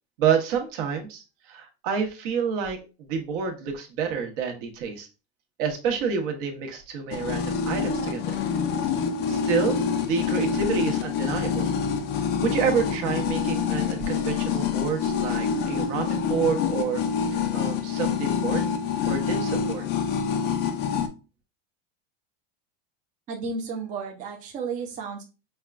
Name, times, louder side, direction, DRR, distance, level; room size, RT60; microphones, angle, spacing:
voice 1, 0.2-5.1 5.6-8.4 9.3-11.7 12.4-17.0 17.3-18.7 19.0-19.9, right 6 dB, 60° right, 3 dB, 1.1 m, -28 dB
sound 1, 7.1-21.1, left 6 dB, 35° left, 0.4 m, -26 dB
voice 2, 23.3-25.2, right 4 dB, 25° right, 0 dB, 0.6 m, -33 dB
5.4 x 2.3 x 2.4 m, 0.31 s
supercardioid pair, 145°, 31 cm